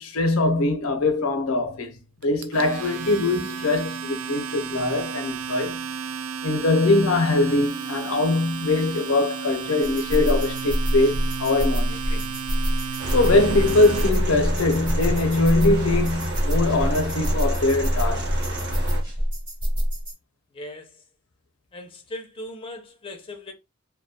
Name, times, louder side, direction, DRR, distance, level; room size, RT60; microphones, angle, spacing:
voice 1, 0.0-2.0 2.2-5.8 6.4-12.3 13.1-18.4, left 2 dB, 90° left, 0.6 m, -22 dB
Domestic sounds home sounds, 2.2-14.1, right 6 dB, 85° right, 0.4 m, -33 dB
sound 1, 9.8-20.1, equal, 20° right, 1.1 m, -26 dB
sound 2, 13.0-19.0, right 1 dB, 55° right, 0.8 m, -30 dB
voice 2, 20.5-21.0 21.7-23.5, left 1 dB, 25° left, 0.5 m, -38 dB
2.3 x 2.1 x 2.7 m
head